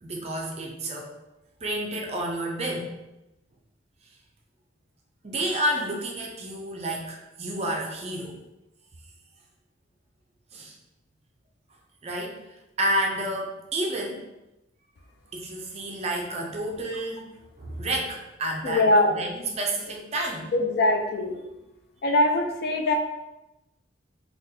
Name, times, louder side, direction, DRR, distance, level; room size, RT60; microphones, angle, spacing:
voice 1, 0.0-1.1 1.6-3.0 5.2-8.4 10.5-10.8 12.0-12.4 12.8-14.3 15.3-17.3 17.6-18.8 19.1-20.5, right 1 dB, 35° right, 0 dB, 0.5 m, -30 dB
voice 2, 18.6-19.2 20.5-21.4 22.0-22.9, left 1 dB, 55° left, 3 dB, 0.4 m, -22 dB
4.0 x 2.3 x 2.7 m, 0.96 s
head